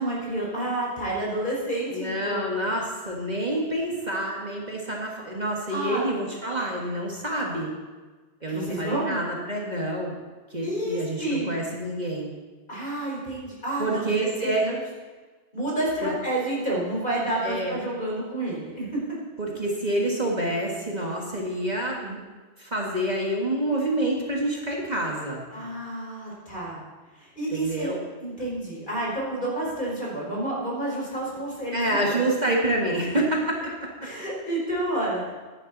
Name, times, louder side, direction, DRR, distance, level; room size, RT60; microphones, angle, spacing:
voice 1, 0.0-2.5 5.7-6.0 8.5-9.2 10.6-11.6 12.7-14.8 15.5-19.0 25.5-26.8 27.1-27.9 28.2-32.2 34.0-35.3, right 1 dB, 45° left, -4 dB, 4.9 m, -29 dB
voice 2, 1.9-7.7 8.4-10.2 10.5-12.3 13.8-14.7 16.0-16.1 17.4-17.8 19.4-22.2 22.6-25.4 27.5-28.0 31.7-33.6 34.0-34.1, right 1 dB, 40° right, -2 dB, 2.0 m, -27 dB
16.5 x 10.5 x 4.1 m, 1.3 s
omnidirectional pair, 1.2 m